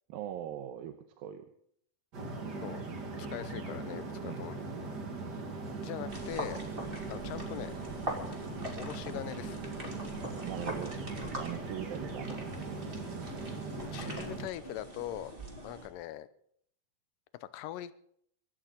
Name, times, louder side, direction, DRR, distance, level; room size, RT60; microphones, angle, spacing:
voice 1, 0.1-1.5 4.2-4.5 10.4-11.0 11.2-12.5, right 11 dB, 80° right, 7 dB, 2.6 m, -41 dB
sound 1, 2.1-14.5, right 3 dB, 40° right, 1.6 m, -40 dB
voice 2, 3.2-4.6 5.8-6.6 7.1-7.7 8.8-9.9 13.7-15.3 15.6-16.3 17.4-17.9, left 13 dB, 75° left, 14 dB, 2.2 m, -41 dB
sound 2, 6.1-15.9, equal, 15° right, 2.7 m, -43 dB
sound 3, 11.0-15.9, right 1 dB, 25° left, 1.6 m, -54 dB
25.0 x 13.5 x 3.9 m, 0.67 s
omnidirectional pair, 4.2 m